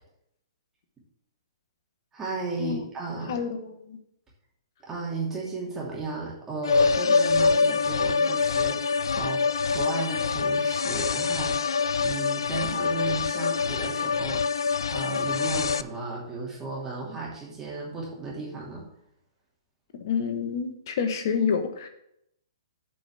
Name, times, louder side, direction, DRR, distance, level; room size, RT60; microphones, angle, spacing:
voice 1, 2.1-3.4 4.8-9.4 9.7-18.9, right 3 dB, 15° right, -4 dB, 2.8 m, -35 dB
voice 2, 3.3-4.0 19.9-21.9, left 6 dB, 50° left, 7 dB, 1.3 m, -28 dB
sound 1, 6.6-15.8, left 5 dB, 70° left, 0.3 m, -25 dB
7.7 x 5.3 x 7.1 m, 0.75 s
figure-of-eight pair, 120°, 3 cm